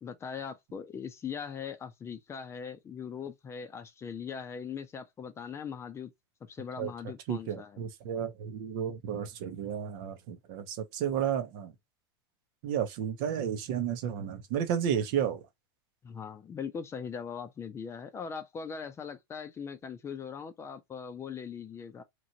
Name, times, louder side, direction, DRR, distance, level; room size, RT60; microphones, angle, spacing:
voice 1, 0.0-6.1 6.4-7.8 16.0-22.0, left 6 dB, 20° left, 0.5 m, -40 dB
voice 2, 7.3-11.7 12.6-15.4, right 9 dB, 60° right, 0.9 m, -32 dB
3.0 x 2.5 x 2.8 m
hypercardioid pair, 115°, 12 cm